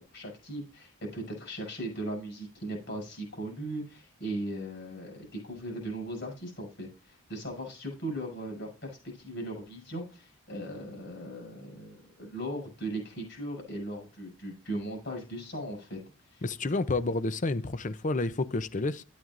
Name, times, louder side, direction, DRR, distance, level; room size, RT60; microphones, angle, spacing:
voice 1, 0.1-16.0 16.3-16.4, right 1 dB, 55° left, 6.0 m, -38 dB
voice 2, 16.4-19.0, left 2 dB, 35° left, 0.6 m, -30 dB
12.5 x 8.8 x 2.5 m
head